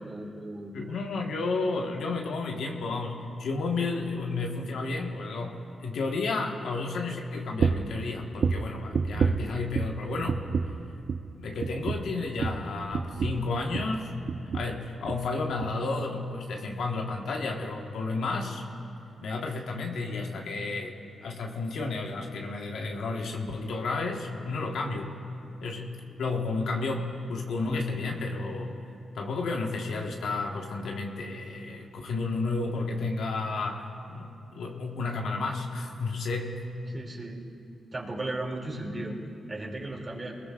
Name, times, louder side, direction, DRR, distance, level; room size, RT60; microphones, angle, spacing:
voice 1, 0.0-1.0 36.9-37.5 37.9-39.2 39.5-40.4, right 2 dB, 35° right, -1 dB, 2.7 m, -36 dB
voice 2, 0.7-10.4 11.4-14.1 14.5-18.6 19.2-25.2 25.6-25.9 26.2-28.8 29.1-36.6, left 3 dB, 80° left, 1 dB, 1.5 m, -32 dB
sound 1, 7.6-8.0 8.4-10.0 10.3-10.8 11.1-11.3 11.6-14.0 14.3-14.8 15.1-15.3 15.6-15.7, right 5 dB, 65° right, 0.6 m, -29 dB
21.5 x 20.0 x 2.5 m, 2.6 s
cardioid pair, 60°, 0 cm